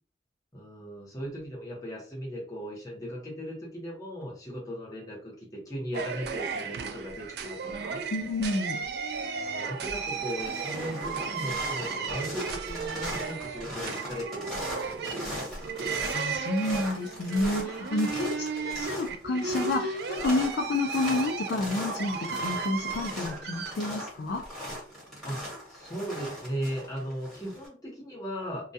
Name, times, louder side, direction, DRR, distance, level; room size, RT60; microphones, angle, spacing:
voice 1, 0.5-8.0 9.3-15.9 18.5-18.9 25.2-28.7, equal, 20° left, -3 dB, 0.8 m, -38 dB
sound 1, 5.9-23.7, right 5 dB, 60° right, 0.3 m, -35 dB
voice 2, 8.1-8.8 16.1-24.4, left 2 dB, 65° left, 2 dB, 0.4 m, -30 dB
sound 2, 9.1-9.5 9.8-27.7, equal, ahead, 1.1 m, -39 dB
2.3 x 2.2 x 2.7 m, 0.40 s
head